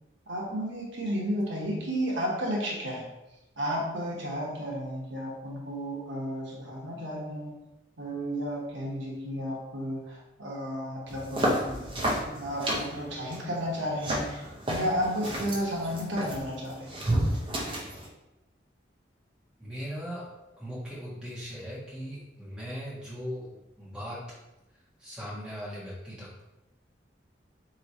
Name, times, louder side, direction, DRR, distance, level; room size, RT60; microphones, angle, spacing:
voice 1, 0.3-3.1 3.6-7.6 8.0-14.4 14.7-17.0, equal, 85° right, -3 dB, 1.1 m, -33 dB
sound 1, 11.1-18.1, right 1 dB, 25° right, 0.7 m, -32 dB
voice 2, 19.6-20.3 20.6-24.2 25.0-26.4, equal, 5° right, -9 dB, 1.4 m, -39 dB
3.5 x 3.1 x 4.1 m, 0.97 s
head